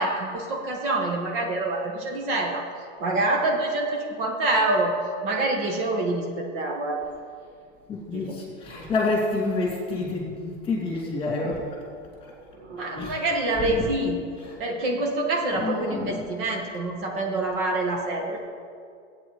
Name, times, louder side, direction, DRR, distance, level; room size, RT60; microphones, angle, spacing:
voice 1, 0.0-2.6 3.0-4.9 5.2-7.0 8.1-8.3 12.6-14.2 14.6-18.4, right 2 dB, 45° right, 1 dB, 1.5 m, -26 dB
voice 2, 7.9-11.8 13.0-13.2 13.6-13.9 14.4-14.6 15.5-16.4, left 3 dB, 15° left, -3 dB, 2.5 m, -28 dB
16.0 x 8.9 x 4.8 m, 2.2 s
supercardioid pair, 170°, 38 cm